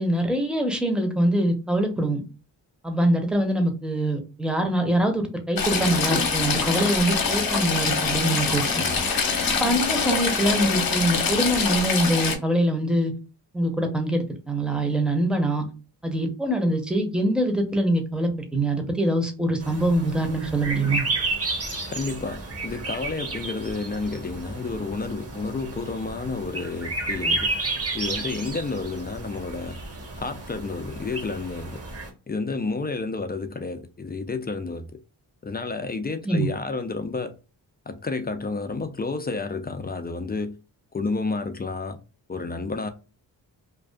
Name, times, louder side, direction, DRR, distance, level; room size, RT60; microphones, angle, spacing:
voice 1, 0.0-2.2 2.8-8.8 9.6-13.1 13.5-15.6 16.0-21.0 36.2-36.5, right 1 dB, ahead, 0.7 m, -24 dB
Stream / Trickle dribble, 5.6-12.3, left 5 dB, 55° left, 0.8 m, -24 dB
voice 2, 8.6-9.0 21.9-27.5 27.9-29.8 30.1-31.8 32.3-34.9 35.4-37.3 37.9-40.5 40.9-42.0 42.3-42.9, left 3 dB, 25° left, 0.3 m, -30 dB
sound 1, 19.6-32.1, right 2 dB, 35° right, 0.9 m, -32 dB
2.5 x 2.3 x 2.2 m
cardioid pair, 60°, 44 cm